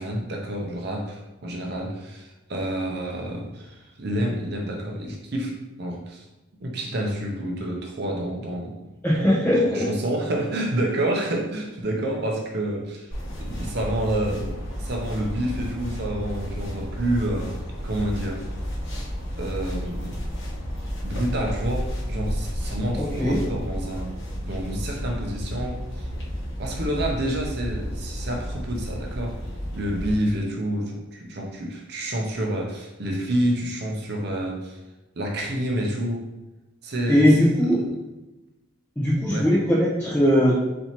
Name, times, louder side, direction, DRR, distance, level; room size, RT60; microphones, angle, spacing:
voice 1, 0.0-6.3 6.6-8.9 9.1-18.5 19.4-20.2 21.0-24.1 24.4-26.1 26.6-29.4 29.7-34.8 35.2-36.3 36.8-37.8 39.3-39.5, right 1 dB, 55° right, 1 dB, 0.6 m, -29 dB
voice 2, 9.0-9.9 22.9-23.4 37.1-37.8 39.0-40.6, equal, 10° left, -9 dB, 1.0 m, -20 dB
sound 1, 13.1-30.1, equal, 70° left, 1.2 m, -32 dB
4.3 x 4.2 x 2.9 m, 1.0 s
head